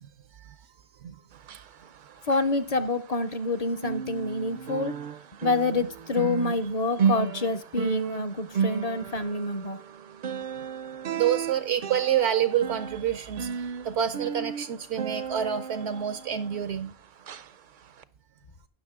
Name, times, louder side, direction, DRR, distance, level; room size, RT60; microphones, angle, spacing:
sound 1, 1.3-3.5 3.8-16.9 17.3-17.5 18.0-18.1, right 7 dB, 55° right, 0.6 m, -33 dB
voice 1, 2.2-5.0 5.4-9.8, left 2 dB, 45° left, 0.7 m, -27 dB
voice 2, 11.2-16.9, right 9 dB, 80° right, 0.9 m, -28 dB
15.5 x 6.1 x 3.6 m
omnidirectional pair, 1.1 m